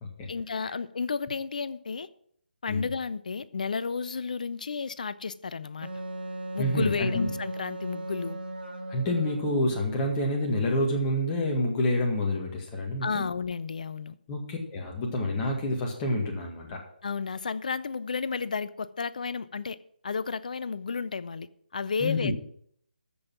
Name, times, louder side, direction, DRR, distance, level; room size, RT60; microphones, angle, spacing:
voice 1, 0.3-2.1 2.6-5.9 6.5-8.4 13.0-14.2 17.0-19.8 20.0-22.3, left 5 dB, 50° left, 0.5 m, -32 dB
Wind instrument woodwind instrument, 5.8-9.9, right 1 dB, 85° right, 2.0 m, -37 dB
voice 2, 6.6-7.3 8.9-13.2 14.3-16.8 22.0-22.3, left 1 dB, 20° left, 1.8 m, -28 dB
14.0 x 5.4 x 6.0 m
figure-of-eight pair, 145°, 5 cm